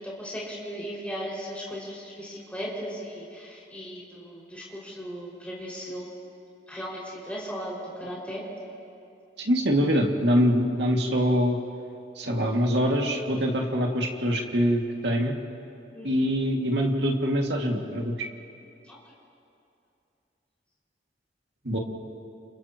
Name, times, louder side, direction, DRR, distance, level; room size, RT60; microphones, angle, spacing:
voice 1, 0.0-6.1 6.7-8.4 15.9-16.3 18.9-19.0, equal, 10° left, -7 dB, 5.6 m, -37 dB
voice 2, 9.4-11.6 12.2-15.3 16.0-18.2 21.6-21.8, equal, 85° right, 0 dB, 2.2 m, -24 dB
29.5 x 29.5 x 3.0 m, 2.6 s
head